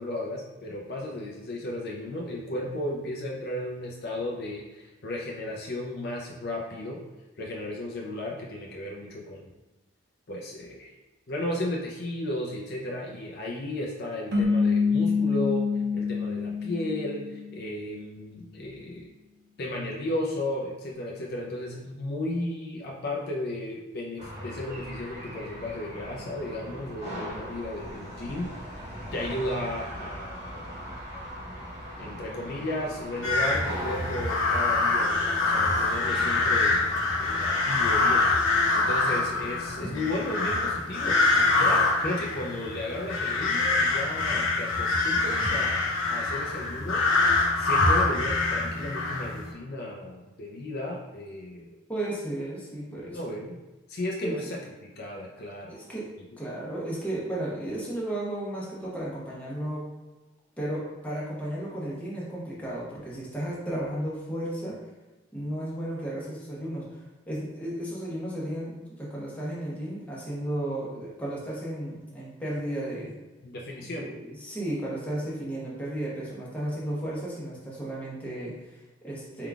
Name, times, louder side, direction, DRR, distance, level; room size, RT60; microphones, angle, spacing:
voice 1, 0.0-7.0 7.4-9.5 10.3-10.9 11.3-15.7 15.9-19.1 19.6-28.8 29.1-30.7 31.1-31.2 32.0-36.7 37.2-38.3 38.7-47.0 47.6-51.7 53.0-53.6 53.9-55.7 73.4-74.1, left 1 dB, 50° left, -2 dB, 0.5 m, -34 dB
sound 1, 14.3-17.6, left 5 dB, 55° right, 0.7 m, -26 dB
sound 2, 24.2-40.3, equal, 30° right, 1.4 m, -40 dB
sound 3, 33.2-49.5, left 3 dB, 70° left, 0.9 m, -25 dB
voice 2, 51.9-53.4 54.2-54.4 55.7-56.1 56.4-59.8 60.6-64.8 65.3-67.0 67.3-73.2 74.0-79.5, right 1 dB, 5° left, -6 dB, 0.9 m, -34 dB
4.5 x 3.7 x 2.3 m, 1.1 s
head